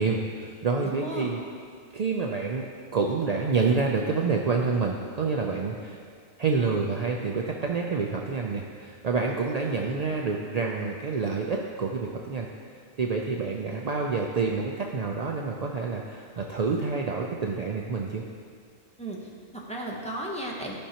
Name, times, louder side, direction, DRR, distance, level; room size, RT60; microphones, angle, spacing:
voice 1, 0.0-1.4 1.9-2.7 2.9-6.0 6.4-12.5 13.0-18.2, right 4 dB, 65° right, 0 dB, 0.4 m, -28 dB
voice 2, 0.8-1.3 19.0-20.8, right 1 dB, 5° left, -4 dB, 0.9 m, -35 dB
13.5 x 5.5 x 2.9 m, 2.1 s
omnidirectional pair, 1.3 m